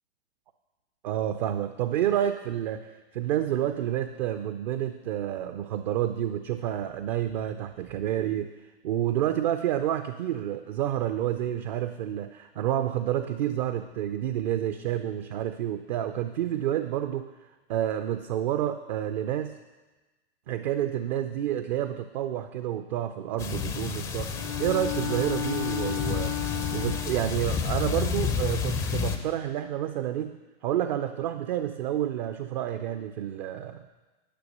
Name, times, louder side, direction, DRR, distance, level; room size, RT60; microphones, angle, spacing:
voice 1, 1.0-8.5 8.8-17.3 17.7-19.6 20.5-26.3 26.7-33.8, right 11 dB, 45° right, 9 dB, 0.5 m, -29 dB
sound 1, 23.4-29.2, left 7 dB, 10° left, 0.4 m, -30 dB
Bowed string instrument, 24.3-27.3, left 9 dB, 80° right, 3.6 m, -33 dB
10.0 x 6.0 x 6.7 m, 1.2 s
hypercardioid pair, 115°, 33 cm